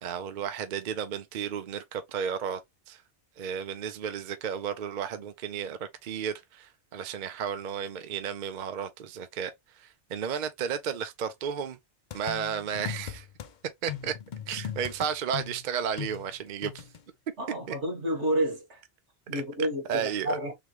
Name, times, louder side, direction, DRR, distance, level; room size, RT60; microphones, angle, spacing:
voice 1, 0.0-2.6 2.9-3.0 3.4-11.8 12.1-13.3 13.8-14.2 14.5-16.8 17.7-17.8 19.3-19.4 19.9-20.4, right 7 dB, 55° right, 0.6 m, -33 dB
sound 1, 12.1-13.5 13.9-17.0, left 8 dB, 50° left, 0.6 m, -39 dB
voice 2, 17.4-18.8 19.3-20.5, right 1 dB, 85° right, 1.8 m, -30 dB
3.6 x 3.4 x 3.1 m
omnidirectional pair, 1.2 m